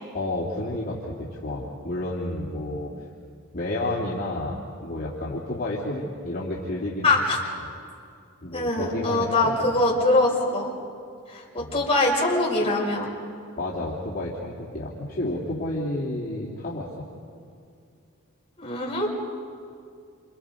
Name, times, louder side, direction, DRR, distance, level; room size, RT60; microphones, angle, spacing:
voice 1, 0.1-2.9 3.5-7.1 8.4-9.7 11.6-11.8 13.6-17.1, left 1 dB, 45° left, -6 dB, 3.4 m, -31 dB
voice 2, 7.0-7.4 8.5-10.7 11.3-13.1 18.6-19.1, left 2 dB, 25° left, -3 dB, 6.2 m, -23 dB
30.0 x 28.5 x 5.4 m, 2.4 s
head